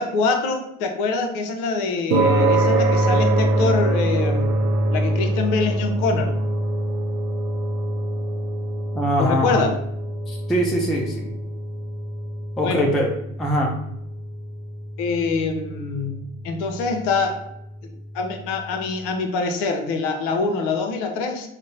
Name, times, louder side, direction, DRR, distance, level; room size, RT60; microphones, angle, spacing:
voice 1, 0.0-4.6 4.9-6.3 9.2-9.8 12.6-12.9 15.0-17.5 17.8-21.5, left 4 dB, 50° left, 6 dB, 0.8 m, -25 dB
sound 1, 2.1-18.6, right 1 dB, 70° right, 0.9 m, -25 dB
voice 2, 8.9-9.6 10.3-11.3 12.6-13.1 13.4-13.7, equal, ahead, 0 dB, 0.3 m, -22 dB
5.0 x 2.2 x 4.0 m, 0.79 s
figure-of-eight pair, 70°, 43 cm